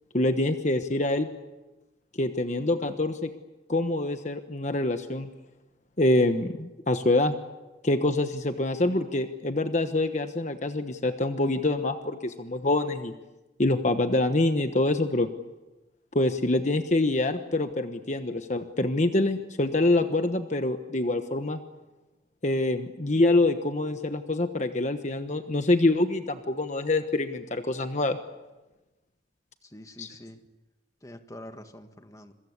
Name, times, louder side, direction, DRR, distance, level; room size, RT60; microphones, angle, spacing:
voice 1, 0.1-1.3 2.2-3.3 3.7-5.3 6.0-7.4 7.8-13.1 13.6-15.3 16.1-21.6 22.4-28.2 30.0-30.1, left 2 dB, 40° left, 8 dB, 1.2 m, -25 dB
voice 2, 29.6-30.4 31.0-32.3, left 1 dB, 20° left, 7 dB, 1.6 m, -45 dB
26.5 x 23.5 x 8.3 m, 1.1 s
head